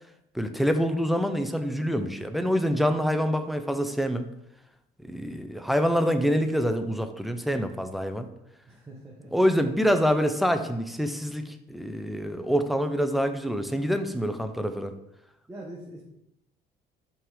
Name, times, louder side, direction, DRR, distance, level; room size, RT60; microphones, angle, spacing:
voice 1, 0.3-4.3 5.1-8.3 9.3-14.9, equal, ahead, 8 dB, 0.5 m, -26 dB
voice 2, 5.1-5.4 8.6-9.3 15.5-16.0, right 1 dB, 15° right, -3 dB, 1.0 m, -43 dB
5.8 x 3.6 x 4.9 m, 0.82 s
cardioid pair, 110°, 17 cm